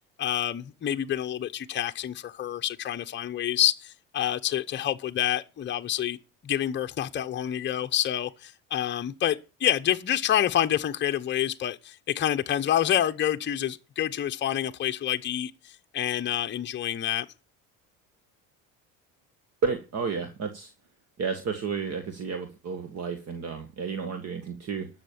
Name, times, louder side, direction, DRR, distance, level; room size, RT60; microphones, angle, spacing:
voice 1, 0.2-6.2 6.4-17.3, left 11 dB, 30° left, 0.8 m, -28 dB
voice 2, 19.6-20.7 21.2-24.9, right 5 dB, 45° right, 1.8 m, -31 dB
12.0 x 6.5 x 7.0 m
supercardioid pair, 105°, 36 cm